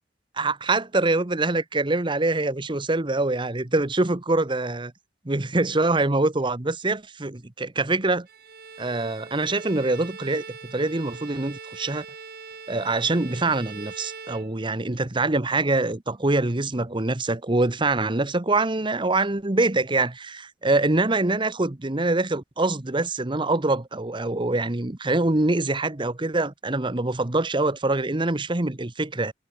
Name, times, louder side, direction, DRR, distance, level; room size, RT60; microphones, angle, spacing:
voice 1, 0.4-4.9 5.2-8.3 8.8-12.0 12.7-29.3, right 2 dB, 25° right, 1.1 m, -24 dB
Bowed string instrument, 8.3-15.0, right 5 dB, 55° right, 6.1 m, -42 dB
head